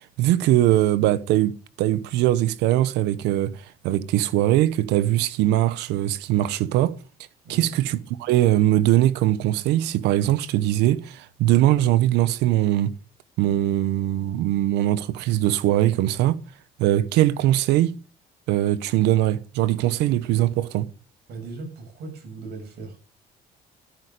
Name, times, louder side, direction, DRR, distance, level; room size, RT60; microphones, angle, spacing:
voice 1, 0.2-6.9 7.5-12.9 13.4-16.4 16.8-18.0 18.5-20.9, right 14 dB, 90° right, 1.0 m, -21 dB
voice 2, 21.3-23.0, right 3 dB, 70° right, 6.6 m, -38 dB
14.0 x 9.2 x 6.7 m
cardioid pair, 110°, 17 cm